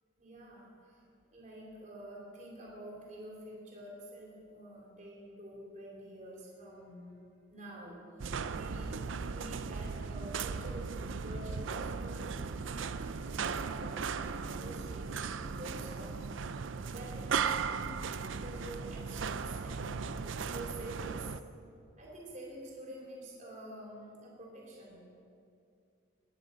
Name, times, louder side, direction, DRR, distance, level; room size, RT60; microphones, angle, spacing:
voice 1, 0.2-1.0 1.3-7.2 7.5-10.9 11.2-18.0 18.3-20.2 20.5-21.3 22.0-25.1, right 1 dB, 40° right, -4 dB, 3.6 m, -48 dB
sound 1, 8.2-21.4, right 5 dB, 80° right, 0.5 m, -37 dB
20.0 x 9.9 x 5.3 m, 2.4 s
head